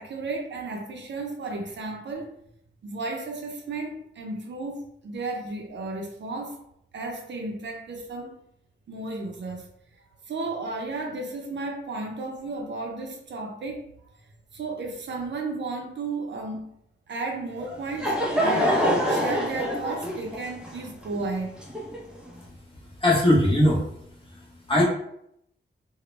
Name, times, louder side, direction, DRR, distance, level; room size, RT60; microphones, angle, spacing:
voice 1, 0.0-2.3 2.8-6.6 6.9-8.3 8.9-9.7 10.3-13.8 14.5-16.7 17.1-21.6, right 3 dB, 65° right, 2 dB, 0.5 m, -33 dB
Laughter / Crowd, 17.6-22.3, equal, 5° right, 0.4 m, -26 dB
voice 2, 23.0-23.8 24.3-24.4 24.7-24.8, left 1 dB, 25° left, -3 dB, 0.7 m, -19 dB
2.1 x 2.0 x 3.1 m, 0.73 s
wide cardioid pair, 110°, 20 cm